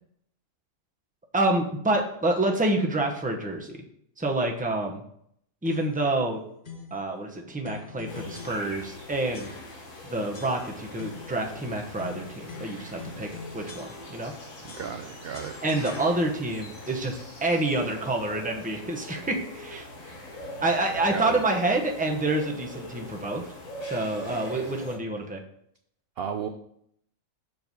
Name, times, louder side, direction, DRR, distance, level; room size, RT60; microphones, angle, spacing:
voice 1, 1.3-3.7 4.2-5.0 5.6-6.4 6.9-9.5 10.1-14.3 15.6-19.9 20.6-23.4 23.8-25.4, right 2 dB, 10° right, 1 dB, 0.7 m, -27 dB
sound 1, 5.6-6.1 6.6-7.0 7.6-9.0 9.3-10.0 10.3-11.4 12.0-14.4 14.7-16.6, left 4 dB, 40° left, 0.9 m, -44 dB
sound 2, 8.1-25.0, left 1 dB, 70° left, 2.0 m, -42 dB
voice 2, 14.6-15.6 21.1-21.4 26.2-26.5, right 7 dB, 70° right, 7 dB, 0.5 m, -34 dB
6.6 x 4.6 x 5.4 m, 0.70 s
omnidirectional pair, 1.5 m